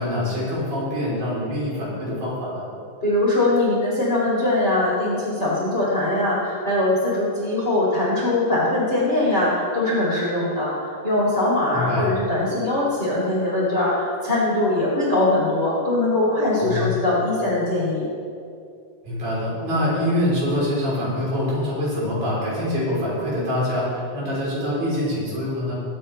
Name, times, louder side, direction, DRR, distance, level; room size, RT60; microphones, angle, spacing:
voice 1, 0.0-2.7 11.7-12.1 16.6-16.9 19.0-25.7, left 1 dB, 55° right, -7 dB, 5.3 m, -25 dB
voice 2, 3.0-18.1, left 2 dB, 30° left, -7 dB, 2.4 m, -21 dB
22.0 x 8.7 x 3.3 m, 2.5 s
omnidirectional pair, 5.0 m